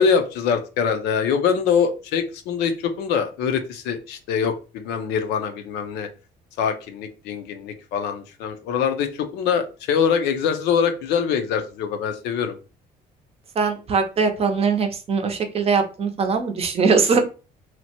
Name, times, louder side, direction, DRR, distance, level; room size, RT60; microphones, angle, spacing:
voice 1, 0.0-6.1 6.6-12.6, left 6 dB, 90° left, 7 dB, 0.5 m, -23 dB
voice 2, 13.6-17.2, right 5 dB, 35° right, 6 dB, 0.6 m, -21 dB
2.8 x 2.1 x 2.8 m, 0.33 s
cardioid pair, 110°, 17 cm